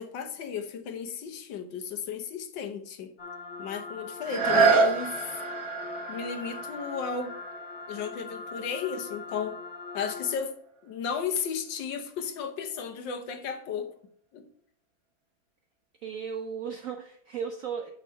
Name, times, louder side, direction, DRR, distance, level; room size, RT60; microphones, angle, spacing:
voice 1, 0.0-3.1 3.6-5.4 6.1-7.4 7.9-9.6 9.9-10.6 10.8-13.9 14.3-14.5, left 6 dB, 75° left, 1.5 m, -34 dB
sound 1, 3.2-10.4, left 4 dB, 45° left, 0.7 m, -41 dB
sound 2, 4.2-9.8 10.4-10.5, right 4 dB, 55° right, 1.7 m, -28 dB
voice 2, 16.0-17.9, right 6 dB, 75° right, 0.7 m, -35 dB
8.3 x 3.7 x 5.5 m
omnidirectional pair, 2.1 m